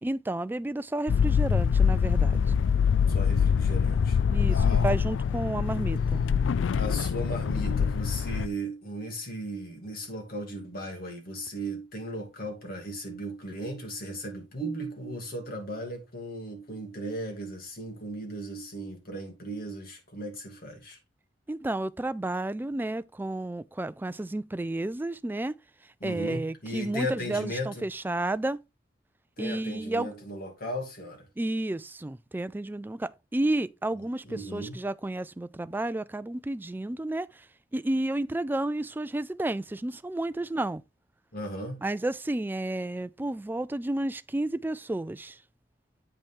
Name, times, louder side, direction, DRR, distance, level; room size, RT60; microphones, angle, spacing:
voice 1, 0.0-2.6 4.3-6.3 21.5-25.6 26.0-28.6 29.4-30.1 31.4-37.5 37.7-40.8 41.8-45.4, right 1 dB, 10° right, 0.3 m, -31 dB
sound 1, 1.1-8.5, left 6 dB, 90° left, 0.4 m, -24 dB
voice 2, 3.1-4.2 4.5-4.9 6.7-21.0 26.0-27.8 29.4-31.3 34.2-34.8 41.3-41.8, right 1 dB, 55° left, 2.7 m, -36 dB
8.5 x 5.4 x 3.6 m
head